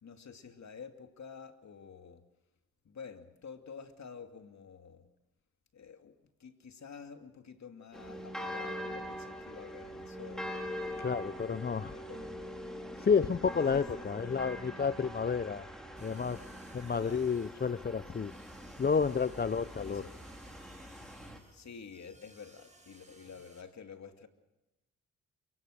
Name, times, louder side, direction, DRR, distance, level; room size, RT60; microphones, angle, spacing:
voice 1, 0.0-2.2 2.8-5.1 5.7-6.1 6.4-11.1 11.9-12.4 13.7-13.8 17.0-17.3 19.8-20.2 21.5-24.3, left 6 dB, 55° left, 7 dB, 2.6 m, -49 dB
sound 1, 7.9-21.4, equal, ahead, 4.6 m, -43 dB
voice 2, 11.0-11.9 13.0-15.7 16.0-16.4 16.7-18.3 18.8-20.0, left 5 dB, 30° left, 15 dB, 0.7 m, -30 dB
sound 2, 15.9-23.6, right 2 dB, 20° right, 6.3 m, -60 dB
29.0 x 17.0 x 6.6 m, 1.0 s
supercardioid pair, 60°, 32 cm